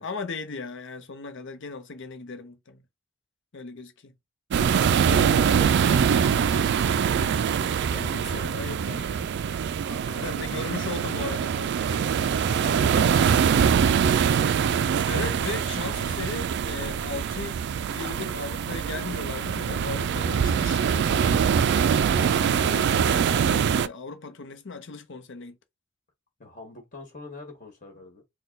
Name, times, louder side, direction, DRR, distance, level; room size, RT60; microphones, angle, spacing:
voice 1, 0.0-2.8 3.5-4.1 5.0-6.8 7.1-9.3 10.2-12.6 15.0-21.6 22.1-25.6, left 4 dB, 65° left, 0.8 m, -38 dB
sound 1, 4.5-23.9, right 7 dB, 55° right, 0.3 m, -23 dB
voice 2, 9.8-10.5 12.5-14.4 26.4-28.2, left 2 dB, 40° left, 1.7 m, -44 dB
4.0 x 2.3 x 3.9 m
head